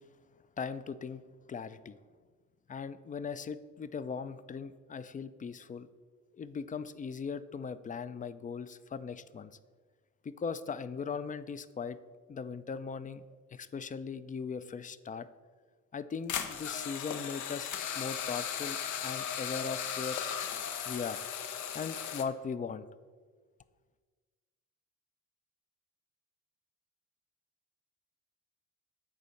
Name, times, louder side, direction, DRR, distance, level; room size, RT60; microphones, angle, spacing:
voice 1, 0.6-1.2 1.5-2.0 2.7-5.9 6.3-9.6 10.2-12.0 12.3-13.2 13.5-15.3 15.9-20.2 20.9-21.2 21.7-22.9, left 5 dB, 25° left, 14 dB, 0.4 m, -39 dB
sound 1, 16.3-22.2, left 8 dB, 75° left, 0.8 m, -37 dB
8.3 x 4.3 x 6.4 m, 1.5 s
cardioid pair, 90°, 30 cm